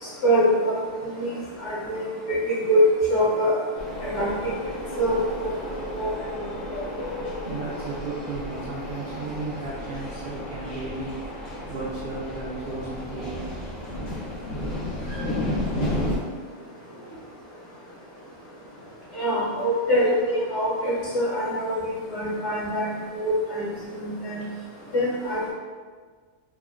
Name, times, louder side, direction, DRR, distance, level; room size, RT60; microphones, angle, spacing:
voice 1, 0.0-2.8 3.1-3.6 4.0-4.3 5.0-5.6 6.0-6.3 6.7-6.8 19.1-23.7 24.0-24.4 24.9-25.5, equal, 65° left, -7 dB, 1.3 m, -25 dB
sound 1, 3.8-16.2, left 1 dB, 85° left, 1.2 m, -32 dB
voice 2, 7.4-13.5 24.4-24.5, right 3 dB, 60° right, -6 dB, 0.6 m, -34 dB
3.0 x 2.1 x 3.6 m, 1.5 s
omnidirectional pair, 1.3 m